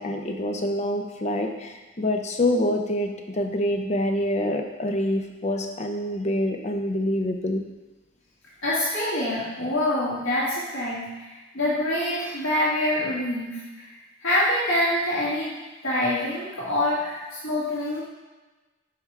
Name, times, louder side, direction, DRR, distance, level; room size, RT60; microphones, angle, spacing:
voice 1, 0.0-7.6, left 1 dB, 35° left, 4 dB, 0.6 m, -26 dB
voice 2, 8.6-11.3 11.5-13.9 14.2-15.5 15.8-18.0, left 1 dB, 85° left, -8 dB, 1.8 m, -25 dB
5.7 x 4.6 x 4.6 m, 1.2 s
head